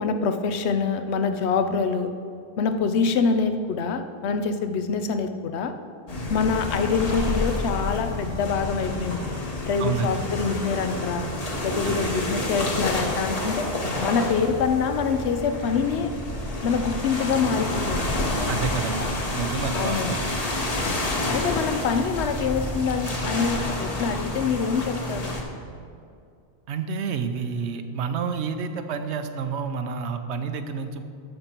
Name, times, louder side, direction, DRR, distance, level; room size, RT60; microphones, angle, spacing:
voice 1, 0.0-2.1 2.6-5.7 6.3-9.3 9.6-11.3 11.6-13.7 14.0-16.1 16.6-18.1 19.0-19.1 19.7-20.1 21.3-25.3, left 5 dB, 85° left, 8 dB, 0.9 m, -25 dB
sound 1, 6.1-25.4, left 1 dB, 35° left, 1.1 m, -29 dB
voice 2, 9.8-10.2 11.8-12.1 18.5-20.2 26.7-31.0, right 6 dB, 85° right, 8 dB, 0.9 m, -29 dB
13.5 x 5.3 x 4.4 m, 2.4 s
omnidirectional pair, 1.1 m